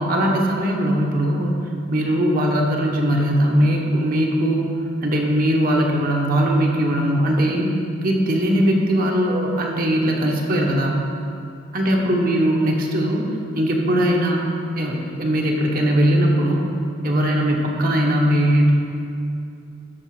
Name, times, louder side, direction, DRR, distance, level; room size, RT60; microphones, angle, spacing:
voice 1, 0.0-1.6 1.9-4.7 5.0-7.7 8.0-11.0 11.7-13.2 13.6-14.5 14.8-16.7 17.0-18.7, equal, 45° right, -1 dB, 1.1 m, -20 dB
12.5 x 5.0 x 4.8 m, 2.6 s
head